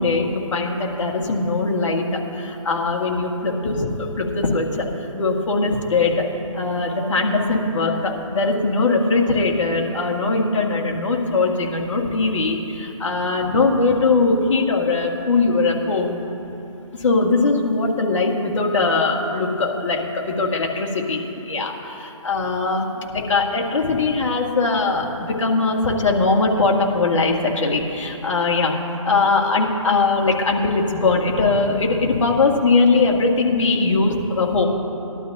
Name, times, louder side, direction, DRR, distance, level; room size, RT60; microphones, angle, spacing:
voice 1, 0.0-3.9 4.2-4.9 5.2-6.3 6.5-16.2 17.0-28.7 29.1-34.7, left 3 dB, 60° left, 0 dB, 1.8 m, -20 dB
19.5 x 12.0 x 2.7 m, 2.9 s
hypercardioid pair, 155°, 18 cm